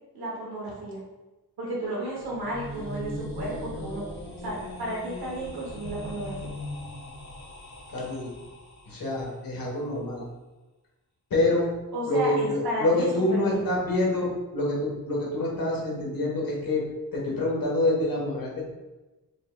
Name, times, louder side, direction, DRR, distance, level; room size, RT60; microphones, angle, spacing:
voice 1, 0.1-1.0 1.6-4.1 4.4-6.5 11.9-13.7, right 1 dB, 90° right, -5 dB, 1.0 m, -33 dB
sound 1, 2.0-9.0, left 1 dB, 45° left, 1.1 m, -39 dB
voice 2, 7.9-8.3 8.8-10.2 11.3-11.7 12.1-16.8 17.1-18.6, left 2 dB, 65° left, -4 dB, 1.3 m, -26 dB
5.2 x 2.9 x 2.3 m, 1.1 s
wide cardioid pair, 130°, 37 cm